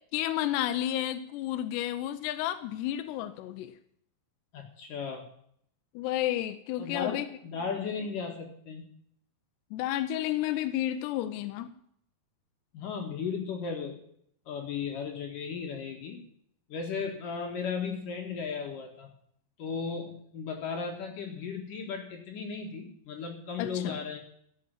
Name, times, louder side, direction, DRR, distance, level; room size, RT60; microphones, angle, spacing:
voice 1, 0.1-3.7 6.0-7.2 9.7-11.7 23.6-24.0, left 13 dB, 80° left, 8 dB, 2.9 m, -31 dB
voice 2, 4.5-5.3 6.8-8.9 12.7-14.0 14.5-16.2 16.7-19.1 19.6-24.2, left 5 dB, 60° left, 1 dB, 2.9 m, -35 dB
14.5 x 8.7 x 7.5 m, 0.69 s
omnidirectional pair, 4.9 m